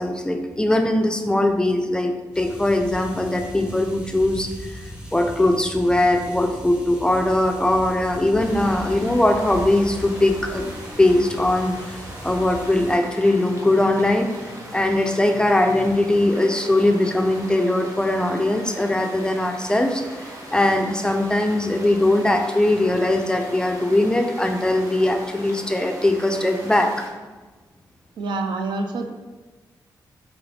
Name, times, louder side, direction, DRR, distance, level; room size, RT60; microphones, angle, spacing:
voice 1, 0.0-4.8 5.1-27.1, left 1 dB, 10° left, 5 dB, 0.4 m, -21 dB
sound 1, 2.3-13.0, equal, 10° right, 0.8 m, -38 dB
sound 2, 8.4-27.1, right 1 dB, 45° right, 0.9 m, -40 dB
voice 2, 28.2-29.1, right 3 dB, 75° right, 5 dB, 0.3 m, -26 dB
3.1 x 2.5 x 3.3 m, 1.2 s
cardioid pair, 60°, 8 cm